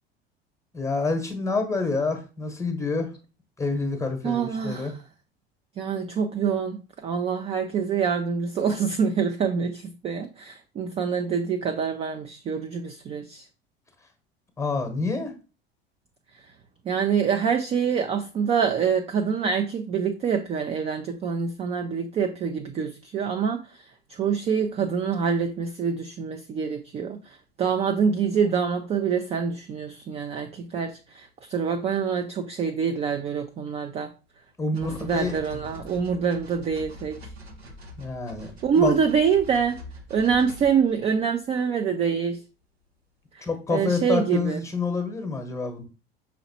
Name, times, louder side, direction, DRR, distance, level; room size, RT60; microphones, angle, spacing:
voice 1, 0.7-3.1 3.6-4.9 14.6-15.3 34.6-35.3 38.0-38.5 38.8-39.0 43.4-45.8, left 3 dB, 10° left, 1.0 m, -27 dB
voice 2, 4.2-5.1 5.8-13.5 16.3-16.6 16.8-34.4 34.7-37.3 38.6-39.8 40.1-42.4 43.3-44.7, right 6 dB, 20° right, 0.4 m, -26 dB
sound 1, 33.1-33.2 33.7-33.8 34.7-41.5 42.2-42.3, left 1 dB, 85° right, 0.8 m, -44 dB
5.6 x 3.1 x 2.7 m
figure-of-eight pair, 70°, 31 cm